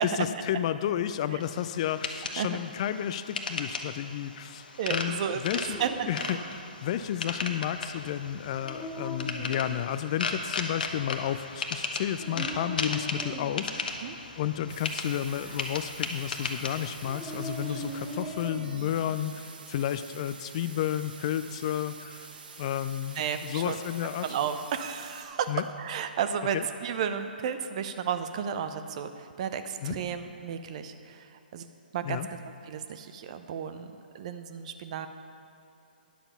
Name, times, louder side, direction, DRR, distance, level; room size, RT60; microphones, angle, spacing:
voice 1, 0.0-4.6 4.9-5.8 6.1-14.0 14.4-22.3 22.6-24.3 25.5-25.6 26.5-26.6 29.8-30.0 32.0-32.3, left 11 dB, 40° left, 12 dB, 0.4 m, -32 dB
sound 1, 1.4-18.2, left 4 dB, 65° left, 1.0 m, -37 dB
voice 2, 4.8-6.4 14.0-14.2 17.7-17.8 23.1-23.8 24.2-31.7 31.9-35.1, right 8 dB, 40° right, 9 dB, 0.6 m, -33 dB
Dog, 5.3-19.0, equal, 10° right, 0.8 m, -42 dB
sound 2, 14.7-25.2, right 4 dB, 65° right, 1.0 m, -48 dB
10.0 x 7.0 x 5.6 m, 2.9 s
figure-of-eight pair, 130°, 5 cm